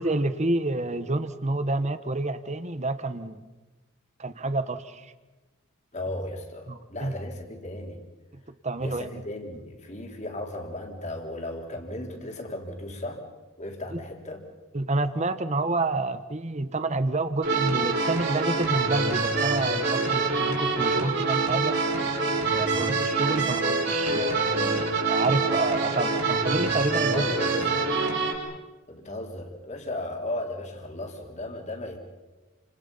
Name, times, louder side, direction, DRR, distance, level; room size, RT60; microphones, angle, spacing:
voice 1, 0.0-3.4 4.2-5.1 6.7-7.1 8.6-9.2 13.9-14.0 14.7-21.8 22.5-27.3, right 2 dB, 35° right, 11 dB, 1.2 m, -28 dB
voice 2, 5.9-8.0 8.8-13.2 13.6-14.4 22.5-22.8 27.1-27.7 28.9-32.0, left 1 dB, 35° left, 2 dB, 3.9 m, -36 dB
sound 1, 17.4-28.3, right 4 dB, 55° right, 5.3 m, -25 dB
29.5 x 27.0 x 5.7 m, 1.2 s
head